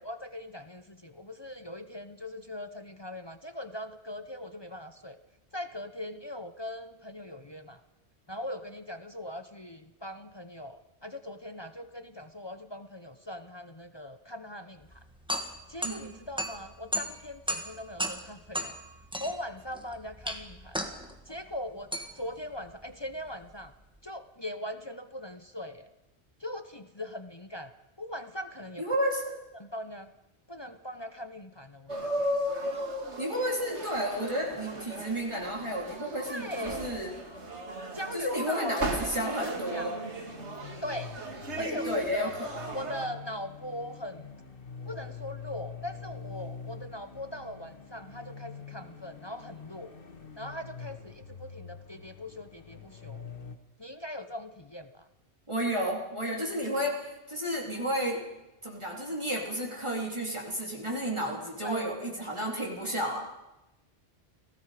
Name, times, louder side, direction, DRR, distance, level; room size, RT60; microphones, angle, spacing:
voice 1, 0.0-5.2 5.5-7.8 8.3-15.0 15.7-18.7 19.2-20.8 21.3-23.7 24.0-25.9 26.4-27.7 28.0-28.8 29.5-30.1 30.5-32.3 36.2-36.9 37.9-38.8 39.2-39.9 40.8-41.2 41.6-44.3 44.8-49.9 50.4-53.2 53.8-55.1 61.6-61.9, left 1 dB, 25° left, 9 dB, 0.8 m, -40 dB
sound 1, 14.8-24.0, equal, 5° right, 1.7 m, -37 dB
voice 2, 28.8-29.3 33.2-37.1 38.1-39.9 41.6-42.5 55.5-58.2 58.6-63.2, equal, 25° right, -2 dB, 3.3 m, -32 dB
sound 2, 31.9-43.1, right 1 dB, 75° right, 2.5 m, -36 dB
sound 3, 39.8-53.6, left 5 dB, 50° left, 1.6 m, -45 dB
29.5 x 17.5 x 5.0 m, 0.96 s
omnidirectional pair, 1.2 m